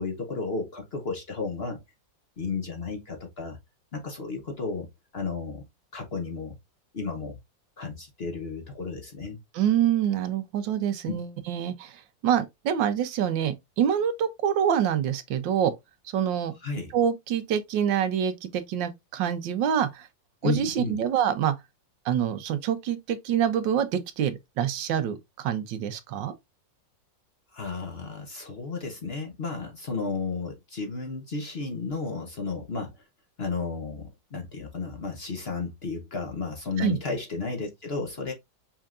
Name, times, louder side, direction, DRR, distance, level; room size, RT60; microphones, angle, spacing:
voice 1, 0.0-1.8 2.4-3.6 3.9-4.9 5.1-5.6 5.9-6.6 6.9-7.4 7.8-9.4 11.1-11.2 16.6-16.9 20.4-21.0 27.5-33.0 33.4-38.3, left 4 dB, 45° left, 0.9 m, -33 dB
voice 2, 9.5-15.7 16.1-16.5 16.9-20.1 20.4-21.5 22.0-26.3 36.8-37.0, right 9 dB, 90° right, 1.5 m, -26 dB
5.6 x 3.6 x 2.5 m
omnidirectional pair, 2.0 m